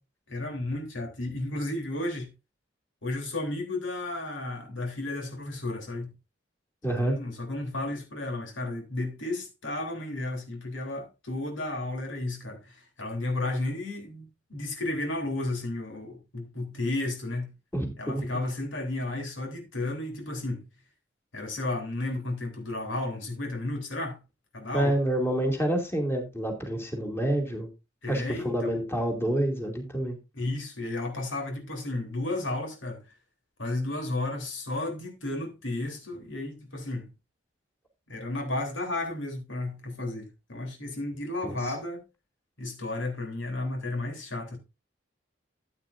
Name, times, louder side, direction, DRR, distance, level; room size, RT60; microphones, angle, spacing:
voice 1, 0.3-2.3 3.0-6.1 6.9-17.5 18.0-20.6 21.3-24.2 24.5-24.9 28.0-28.7 30.3-33.0 33.6-37.1 38.1-42.0 42.6-44.6, left 2 dB, 90° left, 3.4 m, -33 dB
voice 2, 6.8-7.1 17.7-18.2 24.7-27.7 28.1-30.2 41.4-41.7, right 1 dB, 15° left, 2.5 m, -28 dB
14.0 x 8.7 x 2.6 m
head